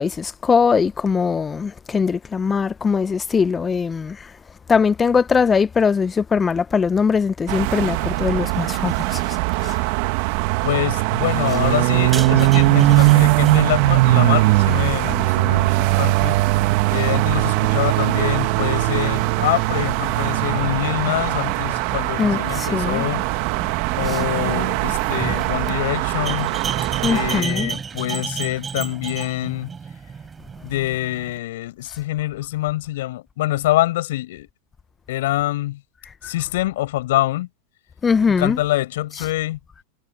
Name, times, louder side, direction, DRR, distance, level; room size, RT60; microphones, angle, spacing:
voice 1, 0.0-4.3 4.7-9.4 9.6-9.7 22.2-23.1 24.1-24.2 27.0-27.7 36.2-36.3 38.0-38.6, left 5 dB, 20° left, 0.8 m, -21 dB
sound 1, 7.5-27.4, right 22 dB, 60° right, 1.6 m, -20 dB
voice 2, 9.6-10.1 10.6-16.4 16.9-23.3 24.0-26.6 27.1-29.7 30.6-34.5 35.1-35.8 36.2-37.5 38.3-39.6, left 16 dB, 70° left, 5.7 m, -25 dB
sound 2, 12.0-31.4, right 6 dB, 20° right, 4.4 m, -33 dB
hypercardioid pair, 105°, 0 cm